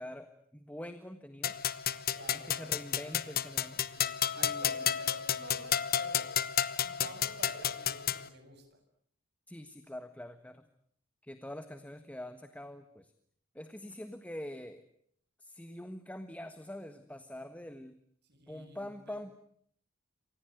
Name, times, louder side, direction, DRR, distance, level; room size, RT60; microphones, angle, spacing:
voice 1, 0.0-1.6 2.3-3.8 4.4-4.8 9.5-10.6 11.2-13.1 13.5-14.8 15.4-17.9 18.5-19.3, left 1 dB, 5° left, 9 dB, 1.5 m, -45 dB
sound 1, 1.4-8.3, left 9 dB, 45° left, 1.2 m, -32 dB
voice 2, 2.1-2.6 3.9-6.4 6.8-8.8 18.2-19.2, right 2 dB, 50° right, 8 dB, 7.2 m, -51 dB
28.0 x 26.0 x 7.9 m, 0.65 s
head